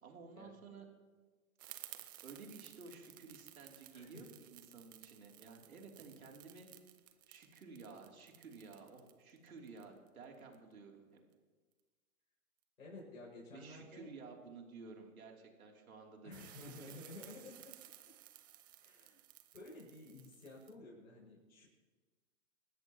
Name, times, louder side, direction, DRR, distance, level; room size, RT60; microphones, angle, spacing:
voice 1, 0.0-0.8 2.2-6.7 7.3-11.2 13.5-16.5, right 4 dB, 75° right, 1 dB, 3.3 m, -54 dB
sound 1, 1.6-10.6 16.3-20.7, right 14 dB, 15° right, 0.4 m, -57 dB
voice 2, 3.9-4.3 12.8-14.1 16.2-17.7 18.8-19.2 19.5-21.7, left 2 dB, 80° left, -5 dB, 6.4 m, -53 dB
26.5 x 13.0 x 3.1 m, 1.4 s
hypercardioid pair, 125°, 43 cm